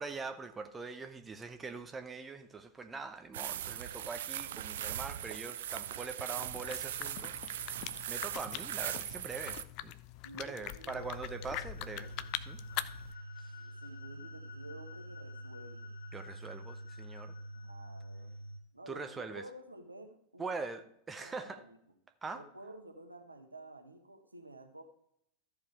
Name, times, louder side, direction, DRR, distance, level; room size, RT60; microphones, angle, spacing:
voice 1, 0.0-7.8 8.1-9.9 10.3-12.1 12.5-12.6 13.4-13.5 16.1-17.3 18.9-19.4 20.4-20.8 21.1-21.6 22.2-22.4, right 4 dB, 15° right, 8 dB, 0.7 m, -43 dB
sound 1, 3.3-9.6, right 11 dB, 60° right, 0.4 m, -39 dB
sound 2, 6.5-13.1, left 14 dB, 45° left, 0.5 m, -43 dB
voice 2, 10.2-12.3 13.5-15.9 17.6-18.3 18.7-20.7 21.2-21.8 22.3-24.8, right 1 dB, 80° right, 6 dB, 1.2 m, -51 dB
sound 3, 10.9-18.6, equal, 75° left, 1.5 m, -46 dB
14.0 x 5.1 x 4.9 m, 0.73 s
figure-of-eight pair, 90°, 0 cm